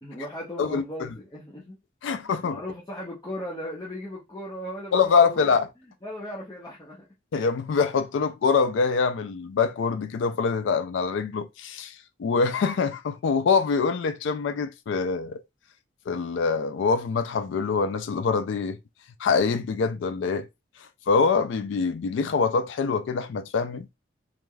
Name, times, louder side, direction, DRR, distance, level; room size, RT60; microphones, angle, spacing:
voice 1, 0.0-1.8 2.4-5.6 6.0-7.1, equal, 20° left, 0.6 m, -37 dB
voice 2, 2.0-2.6 4.9-5.7 7.3-11.9 12.2-15.4 16.1-18.8 19.2-20.5 21.1-23.9, left 5 dB, 75° left, 0.3 m, -24 dB
3.2 x 2.5 x 2.2 m
head